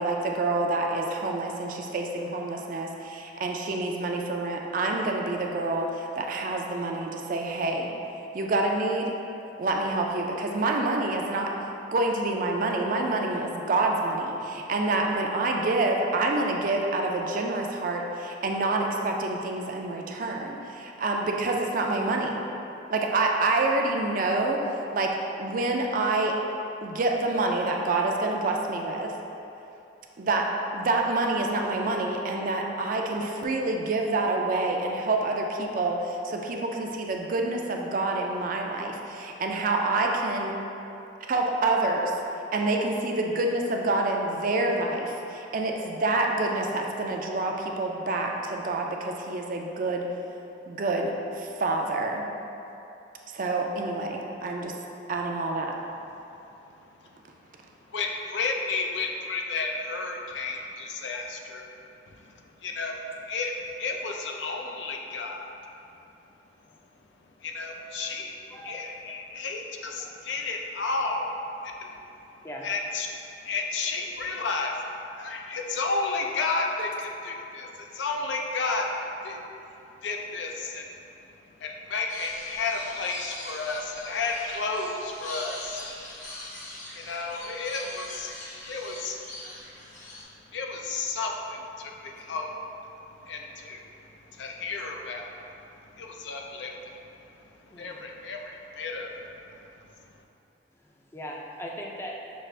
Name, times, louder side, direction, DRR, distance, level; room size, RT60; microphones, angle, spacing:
voice 1, 0.0-7.9 8.3-9.1 9.6-11.5 11.9-22.4 22.9-24.6 24.9-25.1 25.4-26.3 26.8-29.1 30.2-30.5 30.7-40.5 41.2-42.1 42.5-50.1 50.7-52.3 53.3-54.7 55.1-55.7, right 2 dB, 50° right, 1 dB, 0.4 m, -27 dB
voice 2, 56.1-56.5 66.7-66.8 68.5-68.8 70.1-70.2 71.1-71.2 72.4-72.7 97.7-98.0 100.7-102.4, equal, 15° left, -2 dB, 0.4 m, -40 dB
voice 3, 57.9-61.7 62.1-65.5 67.4-68.4 68.6-71.3 71.6-72.0 72.6-73.1 73.4-74.8 75.1-79.4 80.0-81.0 81.6-86.0 86.9-88.3 88.6-89.2 90.5-92.6 93.2-95.5 95.9-97.2 97.7-99.9, left 3 dB, 85° left, 1 dB, 0.5 m, -32 dB
sound 1, 82.1-90.2, left 1 dB, 45° left, 0.7 m, -42 dB
6.2 x 2.4 x 3.2 m, 2.8 s
head